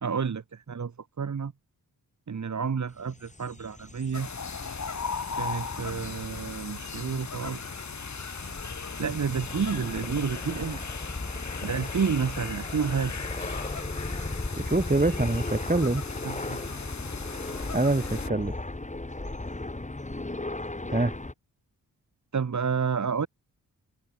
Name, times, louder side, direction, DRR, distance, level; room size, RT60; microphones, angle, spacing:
voice 1, 0.0-1.5 2.3-4.3 5.3-7.7 9.0-10.8 11.6-13.2 16.2-16.6 22.3-23.3, right 6 dB, 55° right, 2.1 m, -30 dB
sound 1, 3.0-21.3, left 2 dB, 20° left, 4.7 m, -37 dB
sound 2, 4.1-18.3, left 5 dB, 55° left, 3.2 m, -38 dB
voice 2, 14.6-16.0 17.7-18.5 20.9-21.1, right 2 dB, 25° right, 6.2 m, -25 dB
cardioid pair, 50°, 35 cm